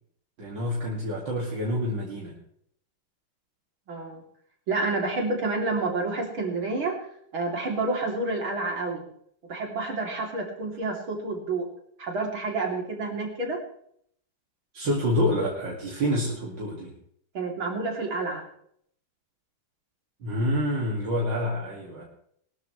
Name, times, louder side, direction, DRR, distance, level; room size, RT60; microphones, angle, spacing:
voice 1, 0.4-2.4 14.7-16.9 20.2-22.0, equal, 65° right, -3 dB, 2.9 m, -27 dB
voice 2, 3.9-4.2 4.7-7.0 7.3-9.1 9.5-11.7 12.0-13.6 17.3-18.4, right 3 dB, 80° right, 1 dB, 3.8 m, -29 dB
21.5 x 13.0 x 3.2 m, 0.67 s
omnidirectional pair, 2.2 m